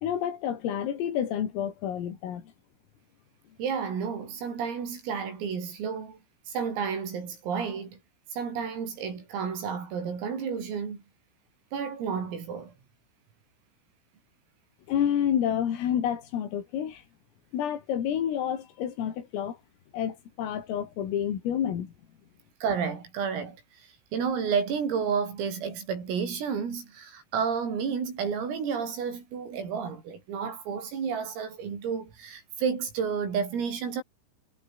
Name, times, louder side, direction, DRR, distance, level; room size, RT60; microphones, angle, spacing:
voice 1, 0.0-2.5 14.9-17.0 17.5-19.6 19.9-21.9, left 9 dB, 80° left, 5.8 m, -29 dB
voice 2, 3.6-6.2 6.5-8.0 8.3-11.0 11.7-12.7 22.6-34.0, right 6 dB, 80° right, 8.6 m, -31 dB
omnidirectional pair, 6.0 m